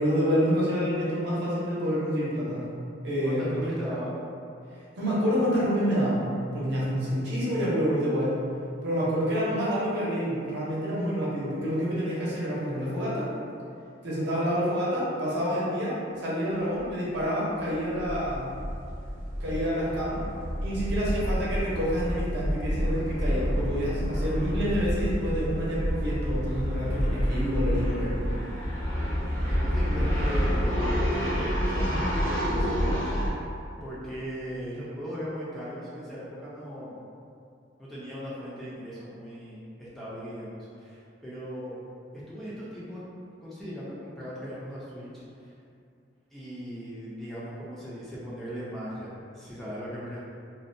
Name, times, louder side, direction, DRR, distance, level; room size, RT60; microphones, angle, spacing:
voice 1, 0.0-2.8 3.0-3.7 5.0-8.4 8.8-13.3 14.0-18.5 19.4-20.2 20.6-28.1, equal, 60° right, -8 dB, 0.7 m, -28 dB
voice 2, 3.2-4.1 23.2-23.4 29.5-33.4 33.8-36.9 37.8-41.8 42.1-43.0 43.4-45.5 46.3-50.2, equal, ahead, -10 dB, 0.4 m, -38 dB
sound 1, 16.8-16.9 17.2-17.3 17.6-33.3, equal, 80° left, 0.9 m, -28 dB
2.5 x 2.1 x 2.5 m, 2.5 s
head